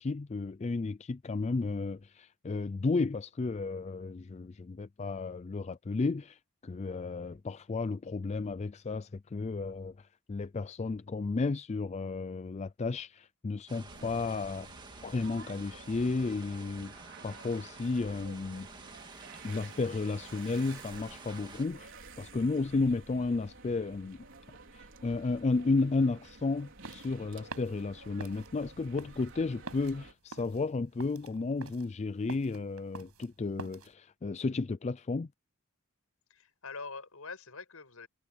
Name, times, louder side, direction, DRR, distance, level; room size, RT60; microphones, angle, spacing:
voice 1, 0.0-14.7 15.0-18.7 19.4-24.2 24.7-35.3, left 3 dB, 30° left, 0.3 m, -33 dB
sound 1, 13.7-21.7, right 3 dB, 20° right, 2.1 m, -50 dB
sound 2, 13.9-30.1, right 3 dB, 60° right, 4.8 m, -52 dB
sound 3, 26.6-33.9, right 3 dB, 80° right, 6.6 m, -47 dB
voice 2, 36.3-38.1, left 4 dB, 75° left, 5.8 m, -44 dB
head